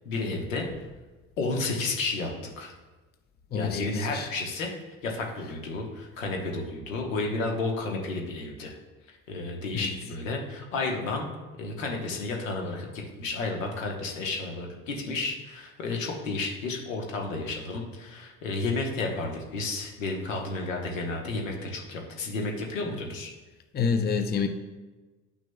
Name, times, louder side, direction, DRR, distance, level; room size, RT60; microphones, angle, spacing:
voice 1, 0.0-0.7 1.4-2.7 3.5-4.7 5.0-8.7 9.3-11.3 11.6-23.3, left 3 dB, 85° left, 1.2 m, -32 dB
voice 2, 3.5-4.3 9.7-9.9 23.7-24.5, left 6 dB, 25° left, 0.6 m, -27 dB
10.0 x 6.1 x 2.3 m
hypercardioid pair, 65°, 38 cm